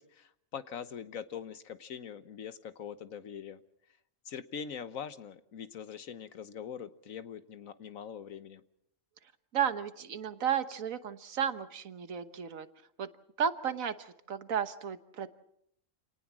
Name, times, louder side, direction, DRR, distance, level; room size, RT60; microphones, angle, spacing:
voice 1, 0.0-3.6 4.2-8.6, left 7 dB, 85° left, 12 dB, 1.5 m, -43 dB
voice 2, 9.5-12.7 13.0-13.1 13.4-15.3, right 8 dB, 85° right, 11 dB, 1.6 m, -33 dB
28.5 x 18.5 x 6.1 m, 0.72 s
omnidirectional pair, 1.4 m